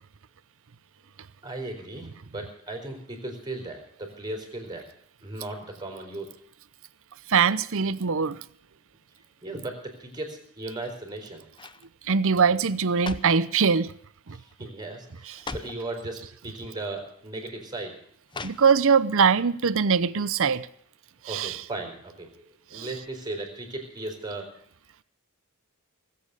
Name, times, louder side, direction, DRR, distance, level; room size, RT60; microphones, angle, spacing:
voice 1, 1.4-4.9 5.2-6.3 9.4-11.5 14.3-18.0 18.3-18.5 21.3-22.4 22.7-24.5, right 2 dB, 20° right, 4.6 m, -37 dB
voice 2, 7.3-8.4 12.0-13.9 14.3-14.4 15.3-15.4 18.4-20.7 21.2-21.6 22.7-22.9, right 6 dB, 65° right, 0.7 m, -22 dB
sound 1, 10.7-11.1 11.5-11.9 12.7-13.5 14.3-14.5 14.8-14.9 15.3-15.9 16.8-16.9 18.3-19.0 19.4-19.5, left 3 dB, 20° left, 0.7 m, -40 dB
19.5 x 8.7 x 8.3 m
head